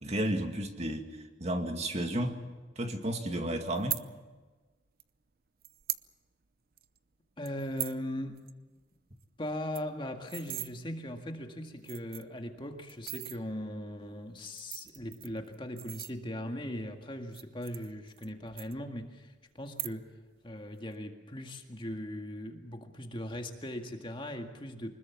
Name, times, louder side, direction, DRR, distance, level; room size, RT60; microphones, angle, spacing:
voice 1, 0.0-2.4 2.8-4.0, right 1 dB, 35° right, 5 dB, 2.2 m, -32 dB
sound 1, 3.7-4.0 5.0-5.1 5.6-6.1 6.4-6.5 6.8-7.0 7.4-8.0 8.4-8.5 8.8-8.9 9.2-9.3 9.5-10.7 11.4-11.5 11.8-12.4 12.9-13.4 14.4-16.5 17.2-18.3 18.6-19.2 19.6-20.2 20.5-20.9, right 15 dB, 50° right, 0.7 m, -39 dB
voice 2, 7.4-8.4 9.4-20.1 20.4-24.9, left 1 dB, 25° left, 4 dB, 1.9 m, -39 dB
25.0 x 21.0 x 7.3 m, 1.3 s
head